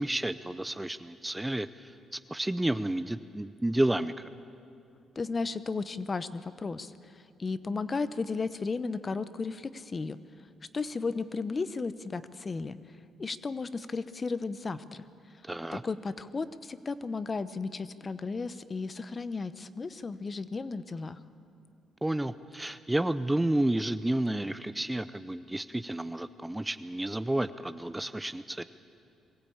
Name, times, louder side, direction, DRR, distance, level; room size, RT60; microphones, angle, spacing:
voice 1, 0.0-4.3 15.4-15.8 22.0-28.6, right 1 dB, 10° right, 13 dB, 0.5 m, -31 dB
voice 2, 5.2-6.9 7.4-10.2 10.7-12.8 13.2-15.0 15.7-21.2, left 4 dB, 35° left, 14 dB, 0.8 m, -34 dB
22.5 x 15.5 x 8.7 m, 2.5 s
cardioid pair, 90°, 0 cm